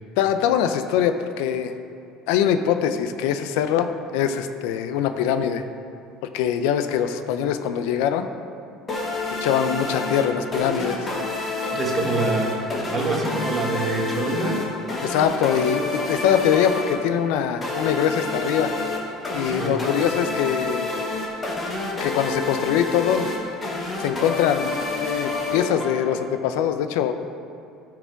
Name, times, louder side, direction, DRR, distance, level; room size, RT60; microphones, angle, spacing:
voice 1, 0.2-1.7 2.3-5.6 6.3-8.3 9.4-11.1 15.0-18.7 19.3-20.9 22.0-23.3 24.0-27.1, left 9 dB, 90° left, 9 dB, 0.5 m, -23 dB
sound 1, 8.9-26.3, left 3 dB, 20° left, 1.1 m, -29 dB
voice 2, 11.7-14.7 19.5-19.8, right 2 dB, 20° right, 0 dB, 1.1 m, -25 dB
13.5 x 4.9 x 4.6 m, 2.6 s
cardioid pair, 175°, 0 cm